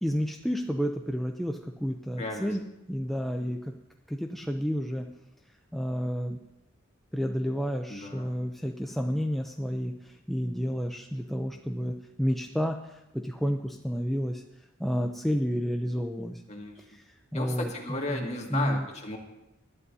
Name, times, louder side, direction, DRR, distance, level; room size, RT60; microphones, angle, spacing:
voice 1, 0.0-2.6 2.9-3.7 4.1-5.1 5.7-6.4 7.1-14.4 14.8-16.4 16.9-17.7 18.1-18.9, equal, ahead, 2 dB, 0.5 m, -30 dB
voice 2, 2.2-2.5 7.9-8.3 16.5-16.8 17.3-19.2, left 2 dB, 35° left, 0 dB, 2.0 m, -34 dB
20.5 x 11.5 x 2.7 m, 0.89 s
head